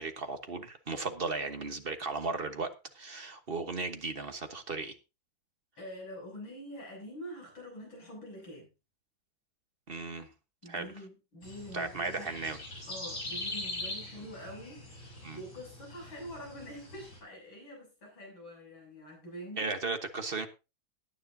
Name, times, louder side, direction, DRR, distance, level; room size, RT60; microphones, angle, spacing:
voice 1, 0.0-2.7 2.9-5.0 9.9-10.3 10.7-10.9 11.7-12.6 15.2-15.4 19.6-20.5, right 3 dB, 35° right, 1.2 m, -36 dB
voice 2, 5.8-8.7 10.6-12.3 12.9-19.7, equal, 80° left, 8.0 m, -45 dB
sound 1, 11.4-17.2, left 2 dB, 55° left, 5.8 m, -42 dB
18.0 x 9.7 x 2.8 m
omnidirectional pair, 2.2 m